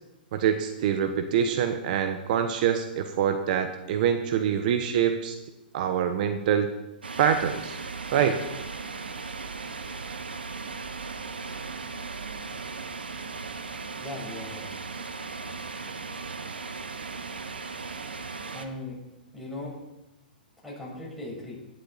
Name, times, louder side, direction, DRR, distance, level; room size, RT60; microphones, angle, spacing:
voice 1, 0.3-5.4 5.7-6.7 7.2-7.8 8.1-8.4, right 8 dB, 55° right, 7 dB, 1.2 m, -25 dB
sound 1, 7.0-18.7, right 4 dB, 90° right, 1.3 m, -37 dB
voice 2, 14.0-14.7 18.5-19.0 19.3-19.7 20.6-21.6, left 2 dB, ahead, -5 dB, 6.5 m, -38 dB
17.5 x 11.5 x 4.2 m, 0.95 s
hypercardioid pair, 120°, 5 cm